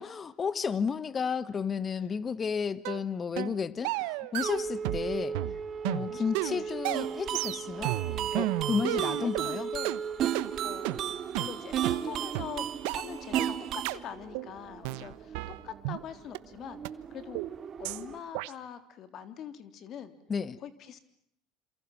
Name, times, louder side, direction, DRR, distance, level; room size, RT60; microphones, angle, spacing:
voice 1, 0.0-5.4 5.8-7.9 8.3-9.7 20.3-20.6, left 6 dB, 30° left, 16 dB, 1.5 m, -32 dB
sound 1, 2.8-3.0 3.4-3.6 3.8-5.1 5.3-9.5 9.8-10.0 10.3-10.5 10.8-11.0 11.3-11.5 11.8-12.0 12.3-12.5 12.8-13.0 13.3-13.5 13.8-14.0 14.3-14.5 14.8-16.0 16.3-16.4 16.8-16.9 17.3-17.5 17.8-18.0 18.3-18.5, right 20 dB, 75° right, 1.1 m, -33 dB
sound 2, 4.4-18.2, right 6 dB, 35° right, 2.4 m, -39 dB
voice 2, 6.1-7.2 7.8-8.0 8.3-8.6 8.9-10.0 10.3-11.1 11.4-16.8 17.1-17.4 17.8-20.1 20.6-21.0, left 9 dB, 50° left, 11 dB, 3.5 m, -44 dB
sound 3, 6.9-13.9, right 11 dB, 55° right, 2.0 m, -34 dB
28.0 x 27.5 x 7.4 m, 0.71 s
supercardioid pair, 90°, 0 cm